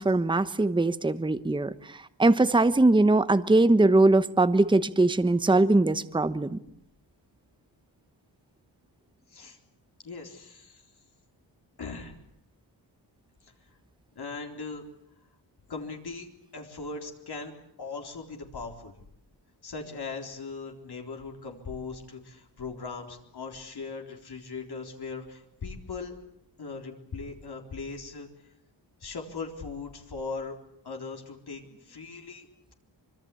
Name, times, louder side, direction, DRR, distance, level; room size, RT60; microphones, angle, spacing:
voice 1, 0.0-1.7 2.2-6.6, right 2 dB, 10° right, 12 dB, 1.0 m, -21 dB
voice 2, 10.0-10.8 11.8-12.1 13.4-13.5 14.2-14.8 15.7-16.3 16.5-17.5 17.8-18.9 19.6-26.1 26.6-28.5 29.0-30.6 30.8-32.5, left 4 dB, 60° left, 2 dB, 4.0 m, -39 dB
25.5 x 24.0 x 8.5 m, 0.73 s
wide cardioid pair, 110°, 44 cm